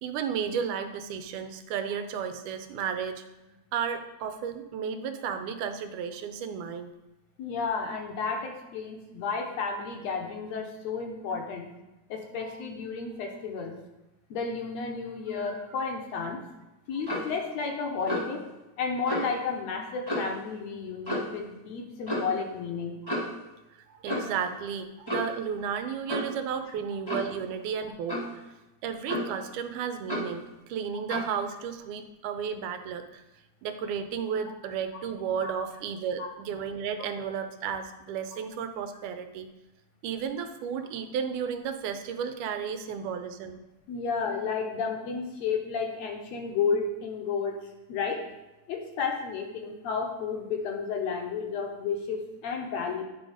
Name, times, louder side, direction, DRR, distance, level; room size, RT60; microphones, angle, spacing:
voice 1, 0.0-3.2 3.7-6.9 12.4-12.6 17.1-17.2 23.7-28.4 28.8-33.2 33.6-39.5 40.0-43.6, right 7 dB, 90° right, 8 dB, 2.2 m, -33 dB
voice 2, 7.4-11.7 12.1-13.7 14.3-16.4 16.9-18.4 18.8-22.9 35.4-35.5 36.2-36.3 43.9-47.5 47.9-48.2 48.7-53.0, left 5 dB, 70° left, 2 dB, 1.9 m, -32 dB
Clock, 17.1-17.3 18.1-18.4 19.1-19.3 20.1-20.4 21.1-21.4 22.1-22.3 23.1-23.4 24.1-24.4 25.1-25.4 26.1-26.3 27.1-27.4 28.1-28.3 29.1-29.5 30.1-30.4 31.1-31.3, equal, 35° left, 0.3 m, -32 dB
9.9 x 3.8 x 4.9 m, 1.0 s
omnidirectional pair, 3.5 m